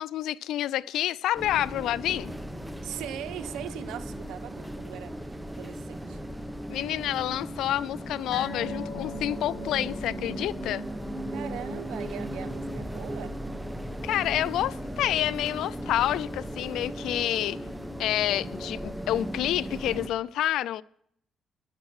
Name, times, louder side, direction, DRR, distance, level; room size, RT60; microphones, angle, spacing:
voice 1, 0.0-2.3 6.7-10.8 14.0-17.6 18.0-20.8, left 13 dB, 85° left, 0.4 m, -28 dB
sound 1, 1.3-20.1, equal, 5° right, 1.2 m, -37 dB
voice 2, 2.8-6.2 11.3-13.4, right 11 dB, 85° right, 0.9 m, -40 dB
sound 2, 8.3-15.1 15.4-15.6 16.0-16.1, equal, 50° left, 4.6 m, -43 dB
12.5 x 11.0 x 4.7 m
cardioid pair, 90°, 0 cm